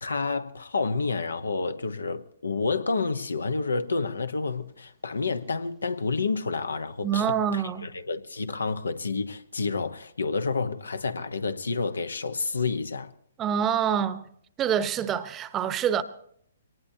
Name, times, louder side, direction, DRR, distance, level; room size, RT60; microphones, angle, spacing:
voice 1, 0.0-13.1, left 4 dB, 80° left, 0.9 m, -29 dB
voice 2, 7.0-7.9 13.4-14.3 14.6-16.0, right 8 dB, 20° right, 0.9 m, -26 dB
23.0 x 18.5 x 2.8 m
hypercardioid pair, 130°, 0 cm